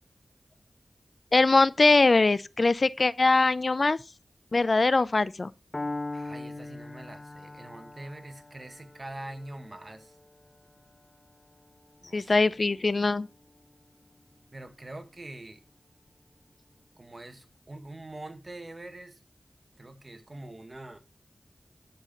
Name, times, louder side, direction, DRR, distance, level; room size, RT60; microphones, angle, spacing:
voice 1, 1.3-4.0 4.5-5.5 12.1-13.3, left 3 dB, 60° left, 0.5 m, -22 dB
Piano, 5.7-13.7, left 2 dB, 35° left, 0.9 m, -42 dB
voice 2, 6.1-10.2 12.0-12.9 14.5-15.6 17.0-19.2 19.8-21.0, right 2 dB, 40° right, 1.8 m, -44 dB
11.5 x 7.5 x 3.8 m
wide cardioid pair, 55°, 0 cm